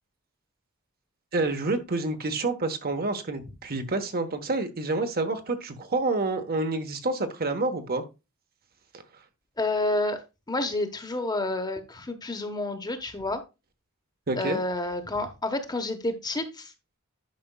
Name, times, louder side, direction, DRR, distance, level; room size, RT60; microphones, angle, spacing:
voice 1, 1.3-8.0 14.3-14.6, right 2 dB, 45° right, 1.2 m, -28 dB
voice 2, 9.6-10.2 10.5-13.4 14.4-16.7, left 2 dB, 20° left, 1.1 m, -29 dB
10.5 x 6.0 x 2.3 m
head